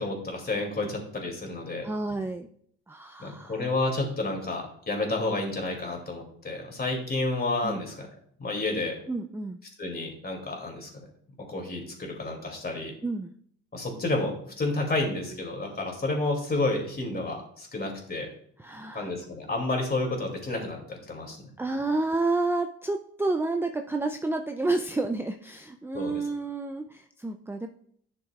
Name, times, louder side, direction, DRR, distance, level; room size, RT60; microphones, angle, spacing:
voice 1, 0.0-1.9 3.2-8.1 8.4-9.0 9.8-10.9 11.4-12.9 13.7-18.3 18.9-21.4 25.9-26.2, left 2 dB, 30° left, 1 dB, 2.6 m, -30 dB
voice 2, 1.8-2.5 2.9-3.7 7.6-7.8 9.1-9.6 13.0-13.3 18.6-19.1 21.6-27.7, right 2 dB, 10° right, 5 dB, 0.4 m, -30 dB
11.0 x 6.3 x 2.4 m, 0.64 s
cardioid pair, 90°, 30 cm